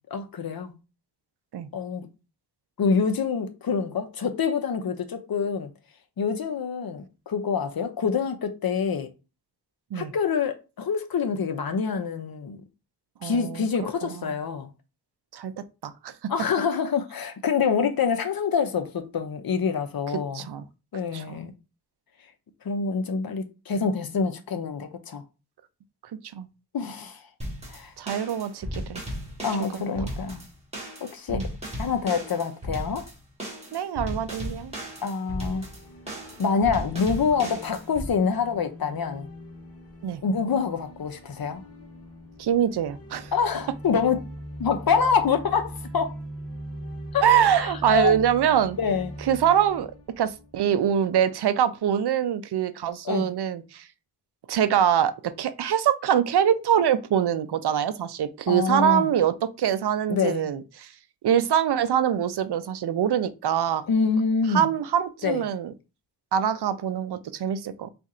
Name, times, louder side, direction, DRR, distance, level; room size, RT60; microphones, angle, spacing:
voice 1, 0.1-0.7 1.7-2.1 2.8-5.7 6.2-9.1 9.9-12.6 13.2-14.7 16.3-20.5 20.9-21.5 22.6-25.2 26.7-27.2 27.7-27.9 29.4-30.4 31.0-31.4 31.8-33.1 35.0-35.7 36.4-39.3 40.2-41.6 43.3-44.2 44.6-46.2 47.1-48.2 48.8-49.1 53.0-53.3 58.5-59.1 60.1-60.5 63.9-64.7 65.2-65.4, left 5 dB, 65° left, 0.7 m, -26 dB
voice 2, 13.2-14.4 15.3-15.5 15.8-16.3 20.1-20.6 21.1-21.4 26.3-26.5 28.0-29.0 29.9-30.1 31.3-31.5 33.7-34.7 40.0-40.2 42.4-43.3 47.2-48.8 49.3-49.9 50.2-53.9 54.5-60.9 61.2-63.9 64.5-65.7 66.3-67.9, right 9 dB, 80° right, 0.5 m, -24 dB
sound 1, 27.4-38.1, equal, 15° right, 1.8 m, -36 dB
sound 2, 35.0-51.1, right 1 dB, 40° left, 0.9 m, -42 dB
4.2 x 2.5 x 3.7 m
wide cardioid pair, 115°, 39 cm